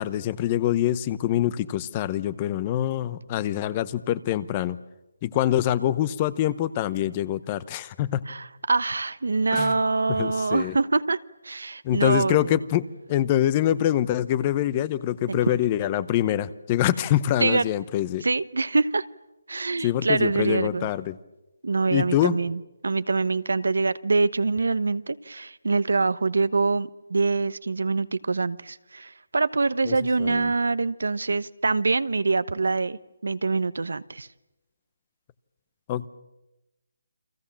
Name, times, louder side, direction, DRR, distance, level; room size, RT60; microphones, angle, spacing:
voice 1, 0.0-4.8 5.2-8.2 9.5-9.7 10.1-10.8 11.8-12.8 13.1-18.2 19.8-21.2 21.9-22.4 29.9-30.5 35.9-36.1, left 12 dB, 25° left, 18 dB, 0.8 m, -25 dB
voice 2, 8.3-12.6 15.3-15.6 17.4-17.7 18.2-19.0 19.5-20.9 21.6-34.3, right 3 dB, 80° right, 16 dB, 1.1 m, -25 dB
29.5 x 23.0 x 7.4 m, 0.99 s
hypercardioid pair, 165°, 0 cm